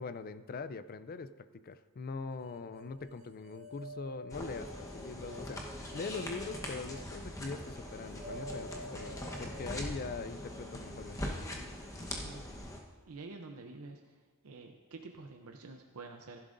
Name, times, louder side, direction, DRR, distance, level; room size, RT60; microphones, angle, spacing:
voice 1, 0.0-11.6, left 4 dB, 40° left, 13 dB, 0.4 m, -42 dB
sound 1, 2.4-11.6, equal, 30° right, 0.8 m, -50 dB
sound 2, 4.3-12.8, left 1 dB, 15° left, 1.1 m, -42 dB
voice 2, 13.1-14.0 14.4-16.4, right 3 dB, 70° right, 4 dB, 0.7 m, -48 dB
15.5 x 11.0 x 2.6 m, 1.4 s
head